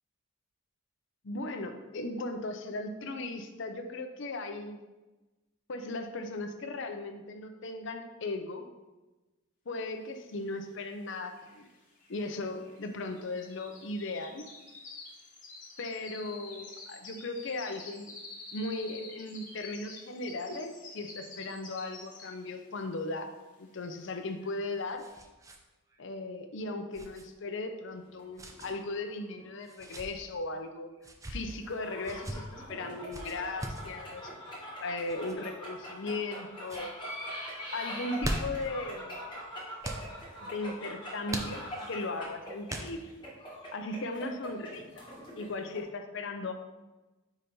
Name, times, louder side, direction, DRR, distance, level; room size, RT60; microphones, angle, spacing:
voice 1, 1.2-4.8 5.7-8.6 9.7-11.6 12.1-14.4 15.8-18.1 18.5-23.3 23.6-25.1 26.0-30.9 31.3-34.3 34.8-36.9 37.7-39.2 40.4-43.1 43.7-45.0 45.4-46.5, left 2 dB, 60° left, 6 dB, 0.6 m, -37 dB
sound 1, 10.8-10.9 11.1-22.6 23.0-23.3 23.7-23.8, left 3 dB, 40° left, 1.2 m, -49 dB
sound 2, 24.3-25.6 25.9-26.0 26.9-27.2 28.3-28.7 29.6-30.1 31.0-31.4 32.0-32.4 33.1-33.9 35.0-35.4 36.0-36.4 36.6-36.9 37.9-38.7 39.8-40.1 41.3-41.9 42.7-43.2, right 1 dB, 15° right, 0.5 m, -39 dB
sound 3, 28.0-29.5 29.8-29.9 31.5-45.8, equal, 25° left, 1.6 m, -43 dB
4.9 x 4.3 x 5.3 m, 1.1 s
head